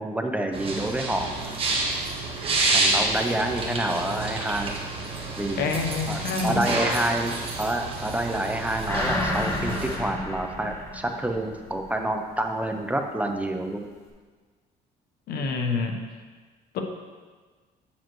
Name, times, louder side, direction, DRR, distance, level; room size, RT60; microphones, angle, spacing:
voice 1, 0.0-1.4 2.7-4.8 5.4-5.8 6.1-13.9, right 1 dB, 10° right, 4 dB, 0.6 m, -28 dB
sound 1, 0.5-10.0, right 2 dB, 35° right, 1.4 m, -29 dB
voice 2, 5.6-6.6 15.3-16.0 16.7-16.8, left 4 dB, 70° left, 4 dB, 1.0 m, -27 dB
sound 2, 8.9-11.8 12.2-12.3, left 2 dB, 15° left, 1.3 m, -30 dB
8.9 x 7.3 x 3.1 m, 1.4 s
cardioid pair, 110°, 17 cm